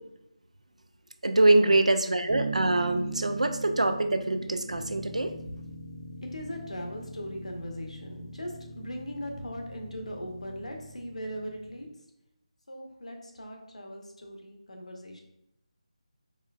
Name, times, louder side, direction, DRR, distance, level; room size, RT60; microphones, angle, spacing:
voice 1, 1.2-5.3, right 2 dB, 75° right, 8 dB, 0.4 m, -24 dB
Bass guitar, 2.3-6.0, right 5 dB, 20° right, 0.6 m, -37 dB
sound 1, 4.6-11.9, left 1 dB, 85° left, 1.2 m, -45 dB
voice 2, 6.3-11.9 12.7-15.2, equal, 70° left, 2 dB, 0.8 m, -39 dB
4.4 x 3.1 x 2.3 m, 0.80 s
figure-of-eight pair, 160°, 4 cm